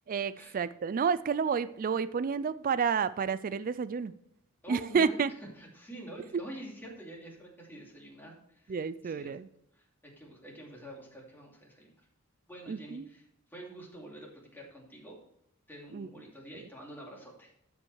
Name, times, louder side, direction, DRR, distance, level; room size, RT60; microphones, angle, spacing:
voice 1, 0.1-4.1 4.7-5.3 8.7-9.5 12.7-13.1 15.9-16.1, right 6 dB, 40° right, 15 dB, 0.4 m, -30 dB
voice 2, 4.6-5.1 5.6-9.4 9.7-11.9 12.5-13.3 13.5-15.2 15.7-17.5, right 1 dB, 10° left, -2 dB, 2.5 m, -47 dB
12.5 x 5.3 x 4.7 m, 0.71 s
head